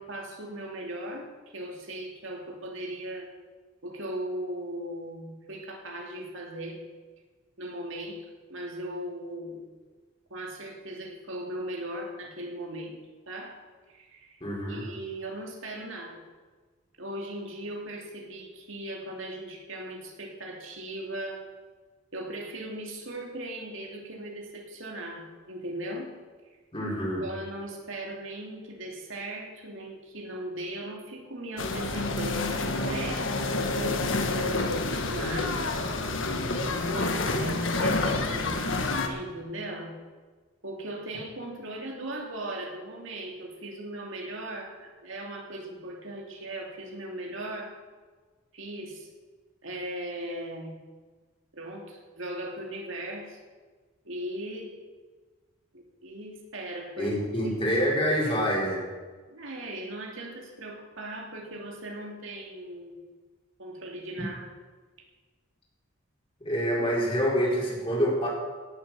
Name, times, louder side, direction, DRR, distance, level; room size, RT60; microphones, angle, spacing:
voice 1, 0.0-3.3 3.8-6.8 7.6-9.6 10.3-13.0 13.3-13.5 13.9-14.3 14.7-16.2 17.0-21.4 22.1-26.1 27.2-33.3 33.7-35.6 36.6-38.7 39.0-40.0 40.6-47.7 48.5-49.1 49.6-50.8 51.5-53.4 54.0-54.7 55.7-57.7 59.3-63.2 63.6-64.5, right 1 dB, 65° right, 0 dB, 2.8 m, -38 dB
voice 2, 14.4-14.9 26.7-27.2 57.0-58.8 66.4-68.3, equal, 25° left, -4 dB, 4.6 m, -26 dB
sound 1, 31.6-39.1, left 2 dB, 65° left, 1.6 m, -28 dB
18.0 x 7.9 x 7.6 m, 1.4 s
head